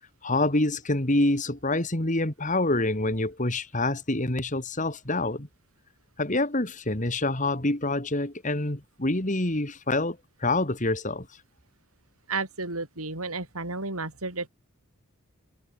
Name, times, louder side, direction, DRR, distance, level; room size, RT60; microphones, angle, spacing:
voice 1, 0.2-5.5 6.2-11.3, left 2 dB, 35° left, 2.6 m, -26 dB
voice 2, 12.3-14.5, right 3 dB, 85° right, 6.8 m, -32 dB
head